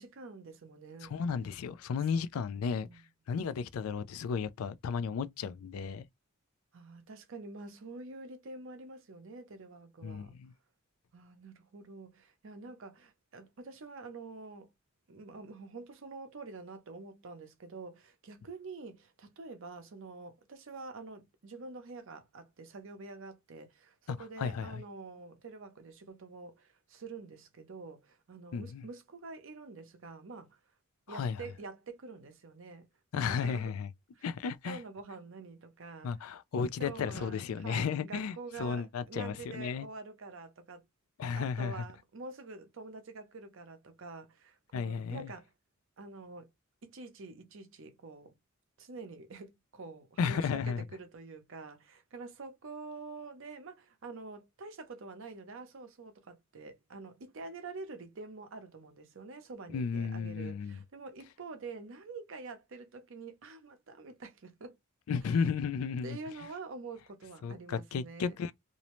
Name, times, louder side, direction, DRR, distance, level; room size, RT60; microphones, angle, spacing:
voice 1, 0.0-1.2 2.1-2.2 2.5-3.0 6.7-10.4 11.1-14.7 15.1-30.6 31.1-32.9 33.2-33.7 34.1-34.2 34.6-36.2 36.8-40.9 41.3-45.5 46.0-46.5 46.8-48.4 48.8-64.8 65.2-65.5 66.0-68.4, right 3 dB, 65° right, 0.6 m, -47 dB
voice 2, 1.0-2.9 3.3-6.1 10.0-10.5 24.1-24.8 28.5-28.8 31.1-31.4 33.1-33.9 34.2-34.8 36.0-39.9 41.2-41.8 44.7-45.3 50.2-50.8 59.7-60.8 65.1-66.2 67.4-68.5, left 6 dB, 85° left, 0.4 m, -34 dB
2.6 x 2.1 x 2.9 m
head